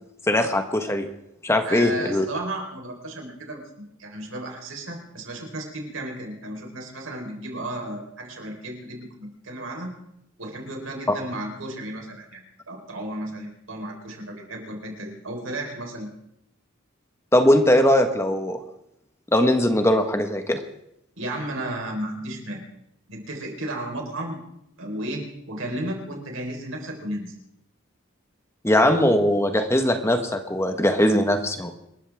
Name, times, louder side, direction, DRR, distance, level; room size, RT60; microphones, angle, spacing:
voice 1, 0.3-1.1 1.4-2.2 17.3-18.6 19.3-20.6 28.6-31.7, left 1 dB, 15° left, 7 dB, 1.3 m, -20 dB
voice 2, 1.7-3.6 4.0-9.9 10.4-16.1 21.2-22.7 23.1-24.4 24.8-27.3, right 1 dB, 75° right, 1 dB, 4.2 m, -33 dB
27.0 x 14.0 x 3.5 m, 0.80 s
head